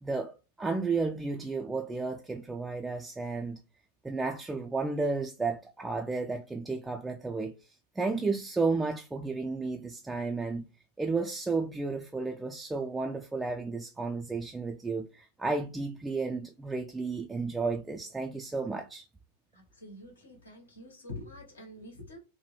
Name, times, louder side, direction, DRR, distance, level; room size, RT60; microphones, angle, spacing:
voice 1, 0.0-3.6 4.0-10.7 11.0-19.1, right 3 dB, 10° right, 0.3 m, -33 dB
voice 2, 19.5-22.2, left 2 dB, 75° left, 1.1 m, -46 dB
2.8 x 2.2 x 3.1 m
figure-of-eight pair, 95°, 0 cm